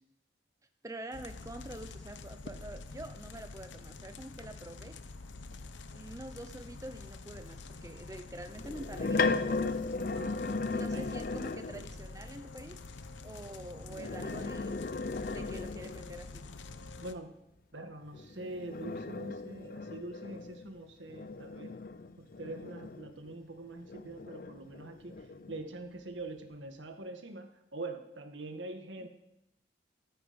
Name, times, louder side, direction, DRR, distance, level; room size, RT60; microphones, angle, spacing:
voice 1, 0.8-5.0 5.6-9.3 10.7-12.8 13.2-14.8 15.2-16.4 29.0-29.1, right 1 dB, 20° right, 8 dB, 0.7 m, -46 dB
sound 1, 1.1-17.1, left 3 dB, 85° left, 0.9 m, -47 dB
sound 2, 8.6-11.9 13.8-16.2 18.1-23.3 23.9-25.6, left 3 dB, 50° left, 0.6 m, -36 dB
voice 2, 17.0-17.3 17.7-21.8 22.2-29.1, right 2 dB, 85° right, 6 dB, 1.7 m, -44 dB
14.0 x 13.5 x 5.2 m, 0.83 s
head